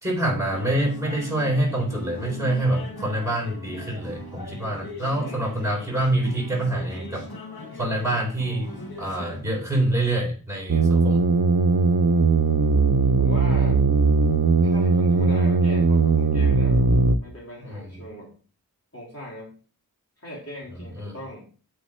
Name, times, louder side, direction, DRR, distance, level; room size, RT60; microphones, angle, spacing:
voice 1, 0.0-7.3 7.8-8.7 9.0-11.3 17.7-17.8 21.0-21.2, right 1 dB, 10° right, 0 dB, 3.9 m, -26 dB
sound 1, 0.5-9.4, left 2 dB, 80° left, 1.6 m, -39 dB
voice 2, 5.2-5.5 13.2-13.8 14.6-16.9 17.2-18.3 18.9-19.5 20.2-21.4, left 1 dB, 40° left, -5 dB, 3.1 m, -39 dB
sound 2, 10.7-17.2, right 4 dB, 85° right, 0.7 m, -19 dB
8.2 x 5.0 x 4.3 m, 0.38 s
wide cardioid pair, 40°, 37 cm